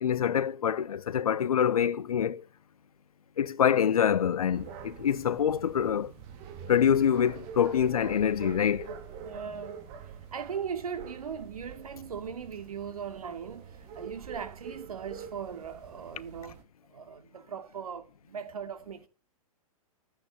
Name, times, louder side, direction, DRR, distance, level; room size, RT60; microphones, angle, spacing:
voice 1, 0.0-2.4 3.4-6.1 6.7-8.9, left 8 dB, 70° left, 1.0 m, -25 dB
sound 1, 4.5-16.6, right 7 dB, 40° right, 3.5 m, -46 dB
voice 2, 9.2-9.9 10.3-16.6 16.9-19.1, right 7 dB, 75° right, 2.8 m, -39 dB
14.0 x 8.9 x 9.1 m
figure-of-eight pair, 110°, 19 cm